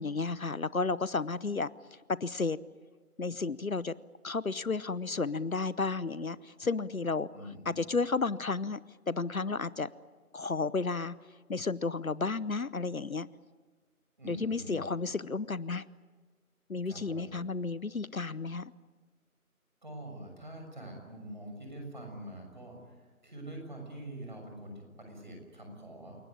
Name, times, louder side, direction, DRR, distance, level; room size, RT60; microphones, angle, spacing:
voice 1, 0.0-1.7 2.1-2.6 3.2-3.9 4.2-7.3 7.7-8.8 9.1-9.9 10.3-11.2 11.5-13.3 14.2-15.8 16.7-18.7, left 4 dB, 70° left, 19 dB, 0.8 m, -32 dB
voice 2, 7.3-7.8 14.2-14.9 16.8-17.3 19.8-23.0 23.2-26.3, right 1 dB, 30° right, 2 dB, 6.4 m, -45 dB
29.0 x 18.5 x 9.7 m, 1.5 s
figure-of-eight pair, 170°, 44 cm